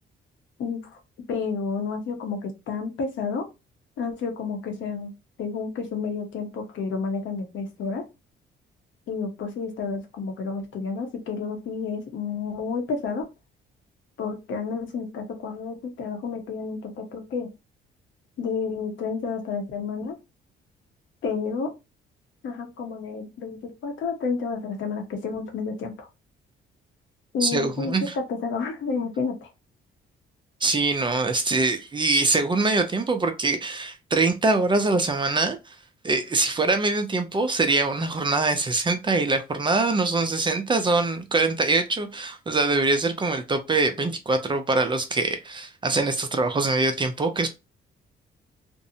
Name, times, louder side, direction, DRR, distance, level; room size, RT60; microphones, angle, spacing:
voice 1, 0.6-1.0 1.3-3.4 4.0-5.1 5.4-8.0 9.1-13.3 14.2-17.5 18.4-20.1 21.2-21.7 22.4-26.1 27.3-29.5, left 5 dB, 70° left, 0.8 m, -30 dB
voice 2, 27.4-28.2 30.6-35.8 36.0-47.5, right 3 dB, 25° right, 0.5 m, -23 dB
2.6 x 2.0 x 2.6 m
cardioid pair, 90°, 20 cm